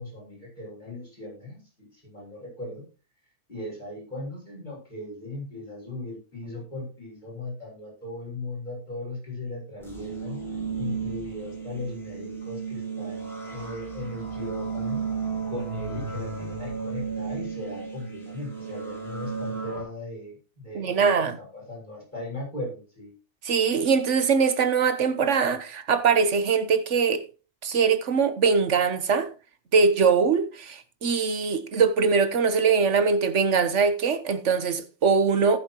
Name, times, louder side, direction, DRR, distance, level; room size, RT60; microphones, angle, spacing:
voice 1, 0.0-2.8 3.5-10.4 10.8-15.0 15.5-23.1, left 2 dB, 40° left, 6.3 m, -38 dB
sound 1, 9.8-19.8, right 5 dB, ahead, 5.5 m, -33 dB
voice 2, 20.7-21.4 23.4-27.2 27.6-29.3 29.7-35.6, right 5 dB, 85° right, 1.5 m, -22 dB
18.5 x 7.2 x 3.0 m
omnidirectional pair, 1.2 m